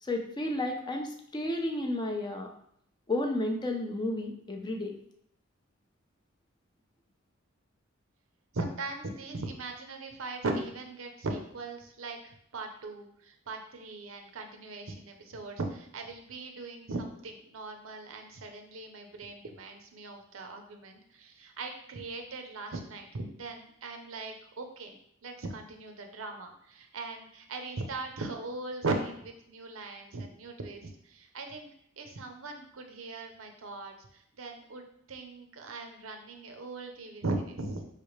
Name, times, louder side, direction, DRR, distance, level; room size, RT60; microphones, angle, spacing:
voice 1, 0.0-2.5 3.1-4.9, left 1 dB, 20° left, 3 dB, 0.5 m, -32 dB
voice 2, 8.5-12.2 12.5-25.0 25.2-31.7 32.0-34.8 35.1-37.9, right 3 dB, 85° right, 4 dB, 0.7 m, -39 dB
4.6 x 3.3 x 3.1 m, 0.70 s
head